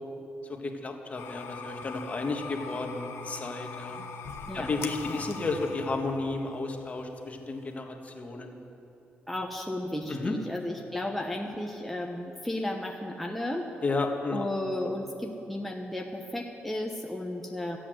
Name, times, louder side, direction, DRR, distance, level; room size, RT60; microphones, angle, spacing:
voice 1, 0.5-4.0 4.5-8.6 10.1-10.4 13.8-14.4 14.7-14.9, left 3 dB, 35° left, 3 dB, 1.6 m, -32 dB
sound 1, 1.2-7.8, left 5 dB, 90° left, 1.0 m, -42 dB
voice 2, 9.3-13.7 14.3-17.8, left 1 dB, 5° left, 1 dB, 1.0 m, -34 dB
15.0 x 8.5 x 7.8 m, 2.9 s
cardioid pair, 90°, 4 cm